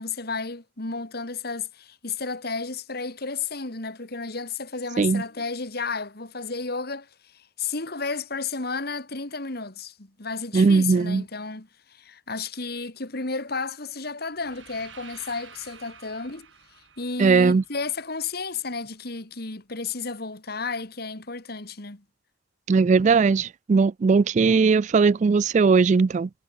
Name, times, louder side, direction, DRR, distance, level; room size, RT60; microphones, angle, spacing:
voice 1, 0.0-7.1 7.3-16.5 17.0-22.0, left 4 dB, 55° left, 2.4 m, -32 dB
voice 2, 10.5-11.2 17.2-17.6 22.7-26.3, right 4 dB, 40° right, 0.3 m, -19 dB
sound 1, 14.3-18.4, right 7 dB, 85° right, 7.7 m, -50 dB
head